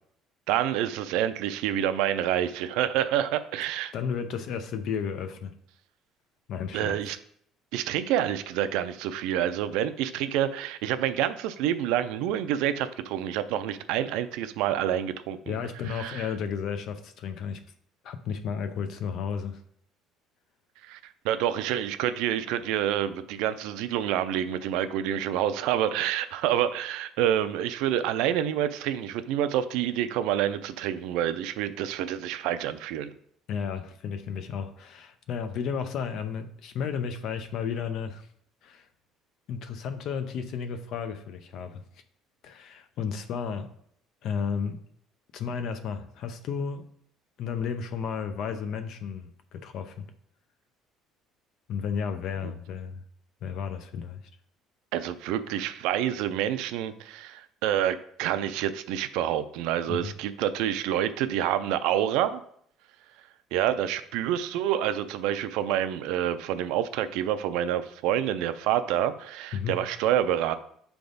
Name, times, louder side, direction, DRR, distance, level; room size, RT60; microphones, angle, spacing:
voice 1, 0.5-3.9 6.7-7.2 7.7-15.6 15.9-16.3 20.9-21.0 21.2-33.1 52.4-52.5 54.9-62.4 63.5-70.5, right 11 dB, 80° right, 0.4 m, -28 dB
voice 2, 3.9-5.5 6.5-7.0 15.5-17.6 18.0-19.6 33.5-38.3 38.6-38.9 39.5-41.8 42.4-43.7 44.2-44.8 45.3-46.8 47.4-50.1 51.7-53.0 53.4-54.2 59.9-60.1 69.5-69.8, left 6 dB, 50° left, 0.6 m, -33 dB
7.6 x 3.5 x 4.0 m
cardioid pair, 175°, 0 cm